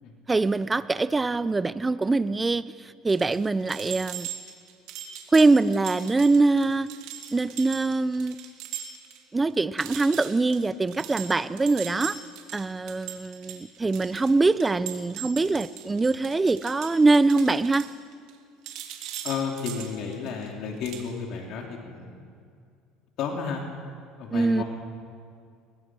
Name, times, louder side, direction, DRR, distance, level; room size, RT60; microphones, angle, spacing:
voice 1, 0.3-4.3 5.3-6.9 7.3-8.4 9.3-12.2 12.5-17.9 24.3-24.6, right 3 dB, 15° right, 16 dB, 0.6 m, -23 dB
sound 1, 3.1-9.2 9.5-9.6 9.8-18.4 18.6-20.5 20.8-21.1, right 10 dB, 70° right, 3.1 m, -40 dB
voice 2, 19.2-22.3 23.2-23.6 24.2-24.6, left 6 dB, 60° left, 1 dB, 3.2 m, -32 dB
23.0 x 20.5 x 6.3 m, 2.3 s
supercardioid pair, 115°, 0 cm